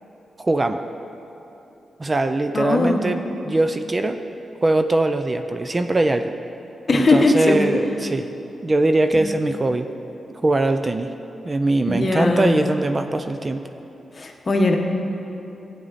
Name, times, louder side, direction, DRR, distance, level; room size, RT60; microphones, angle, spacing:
voice 1, 0.4-0.8 2.0-4.2 4.6-6.3 6.9-8.3 8.6-9.9 10.4-11.1 11.4-13.6, right 2 dB, 25° right, 8 dB, 0.4 m, -21 dB
voice 2, 2.5-3.0 6.9-7.6 11.9-12.6 14.1-14.8, left 2 dB, 40° left, 2 dB, 1.1 m, -19 dB
14.0 x 8.9 x 4.2 m, 2.9 s
cardioid pair, 95°, 0 cm